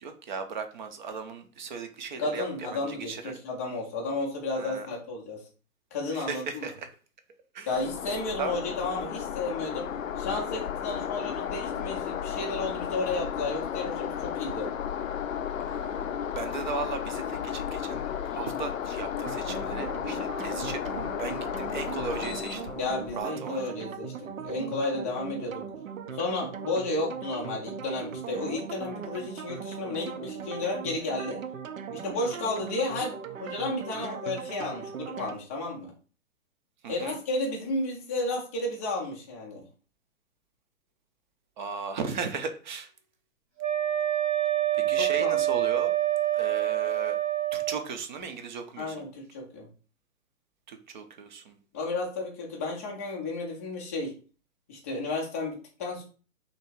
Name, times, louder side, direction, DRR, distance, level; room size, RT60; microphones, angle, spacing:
voice 1, 0.0-3.3 4.6-4.9 6.1-6.9 7.5-7.7 8.4-8.6 15.7-20.8 21.2-22.6 23.2-23.6 36.8-37.2 41.6-42.9 44.7-45.9 46.3-47.2 47.5-49.0 50.7-51.6, right 5 dB, 35° right, 7 dB, 0.6 m, -36 dB
voice 2, 2.2-5.4 5.9-6.6 7.7-14.7 22.7-25.6 26.1-31.4 31.9-35.9 36.9-39.6 44.8-45.7 48.8-49.7 51.7-54.1 54.7-56.0, left 2 dB, 10° left, -2 dB, 0.4 m, -32 dB
sound 1, 7.7-23.3, left 9 dB, 70° left, 0.5 m, -34 dB
sound 2, 19.2-35.4, right 6 dB, 75° right, 0.7 m, -39 dB
Wind instrument woodwind instrument, 43.6-47.8, right 13 dB, 15° right, 0.9 m, -26 dB
3.1 x 2.8 x 4.4 m, 0.38 s
figure-of-eight pair, 130°, 41 cm